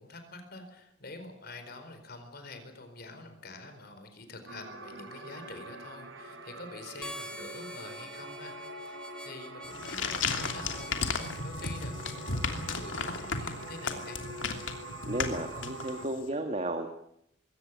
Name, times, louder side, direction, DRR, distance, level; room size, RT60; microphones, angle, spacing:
voice 1, 0.0-14.2, left 2 dB, 55° left, 7 dB, 4.5 m, -47 dB
sound 1, 4.5-16.1, right 2 dB, 80° right, 3.5 m, -44 dB
Harmonica, 7.0-12.2, equal, 5° left, 1.8 m, -46 dB
sound 2, 9.6-16.2, left 4 dB, 75° left, 2.9 m, -34 dB
voice 2, 15.1-16.9, right 1 dB, 35° right, 5 dB, 2.0 m, -33 dB
22.0 x 17.5 x 9.6 m, 0.75 s
head